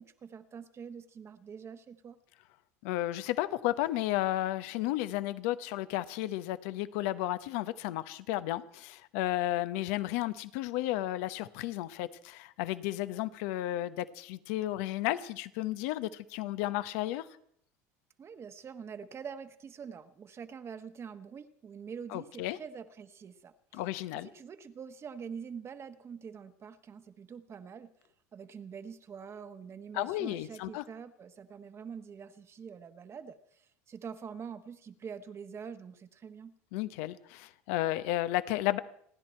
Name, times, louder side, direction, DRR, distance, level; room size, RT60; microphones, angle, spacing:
voice 1, 0.0-2.2 18.2-23.8 24.1-27.9 28.3-36.5, right 6 dB, 35° right, 9 dB, 1.2 m, -45 dB
voice 2, 2.8-17.3 22.1-22.6 23.7-24.3 29.9-30.8 36.7-38.8, left 15 dB, 70° left, 14 dB, 0.9 m, -33 dB
29.5 x 10.5 x 4.4 m, 0.67 s
supercardioid pair, 95°, 8 cm